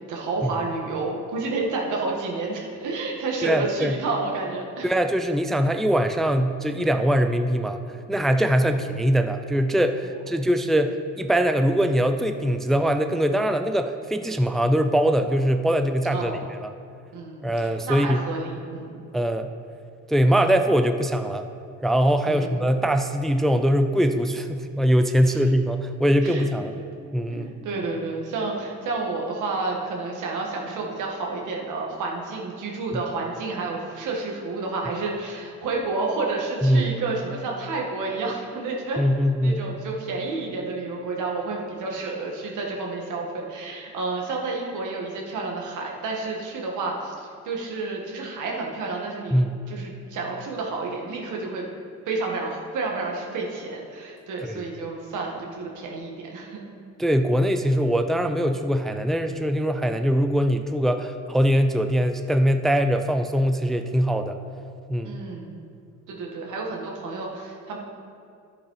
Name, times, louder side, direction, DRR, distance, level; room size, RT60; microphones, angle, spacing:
voice 1, 0.1-4.9 16.1-16.4 17.1-19.0 22.2-22.6 25.2-25.4 26.2-26.5 26.8-26.9 27.3-39.1 39.4-49.4 49.7-51.7 52.1-56.6 65.0-65.5 66.1-67.8, right 3 dB, 80° right, -1 dB, 1.9 m, -30 dB
voice 2, 3.4-3.9 4.8-7.8 8.1-16.7 17.4-18.2 19.1-19.5 20.1-21.5 21.8-26.8 27.1-27.5 36.6-36.9 39.0-39.6 49.3-49.5 54.4-54.6 57.0-64.4 64.9-65.2, equal, ahead, 7 dB, 0.5 m, -22 dB
10.5 x 7.4 x 4.9 m, 2.5 s
cardioid pair, 90°, 30 cm